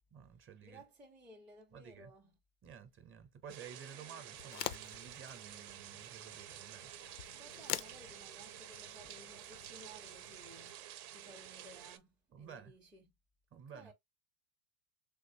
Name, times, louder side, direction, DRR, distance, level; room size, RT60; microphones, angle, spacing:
voice 1, 0.1-0.8 1.7-2.1 2.6-6.9 12.3-12.7 13.5-13.9, right 7 dB, 25° right, 0.7 m, -53 dB
voice 2, 0.6-2.3 3.9-4.2 7.3-13.1 13.5-13.9, right 1 dB, 5° right, 0.4 m, -58 dB
sound 1, 3.5-12.0, right 12 dB, 65° right, 0.7 m, -51 dB
sound 2, 4.3-10.7, left 14 dB, 90° left, 0.5 m, -47 dB
3.5 x 3.1 x 2.7 m
supercardioid pair, 115°, 47 cm